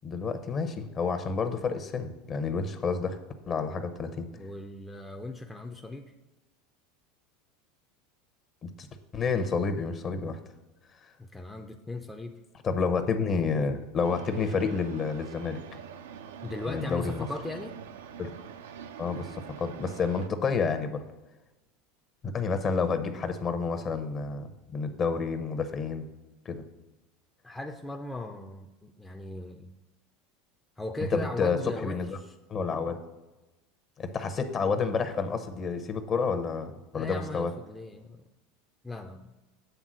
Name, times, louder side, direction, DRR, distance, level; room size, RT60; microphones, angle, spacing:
voice 1, 0.0-3.2 3.5-4.3 8.6-8.9 9.1-10.4 12.6-15.6 16.7-17.3 18.2-18.3 19.0-21.0 22.2-26.1 26.4-26.6 31.1-32.2 32.5-33.0 34.0-37.5, left 5 dB, 35° left, 9 dB, 0.8 m, -29 dB
voice 2, 4.3-6.1 11.2-12.4 16.4-17.8 27.4-29.7 30.8-32.3 36.9-38.2 38.8-39.3, left 2 dB, 10° left, 3 dB, 0.5 m, -38 dB
sound 1, 14.0-20.3, right 8 dB, 85° right, 0.5 m, -44 dB
8.1 x 3.6 x 6.1 m, 1.1 s
hypercardioid pair, 100°, 0 cm